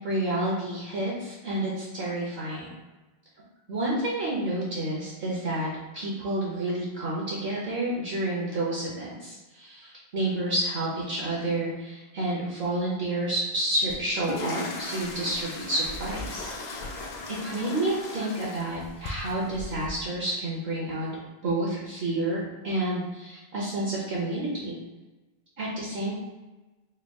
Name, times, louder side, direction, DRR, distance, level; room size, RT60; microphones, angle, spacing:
voice 1, 0.0-2.7 3.7-5.7 5.9-16.5 17.3-21.1 21.4-24.8 25.6-26.1, right 1 dB, 65° right, -5 dB, 0.9 m, -29 dB
sound 1, 13.9-19.9, left 2 dB, 55° left, 0.5 m, -37 dB
3.4 x 2.2 x 3.4 m, 1.1 s
omnidirectional pair, 1.0 m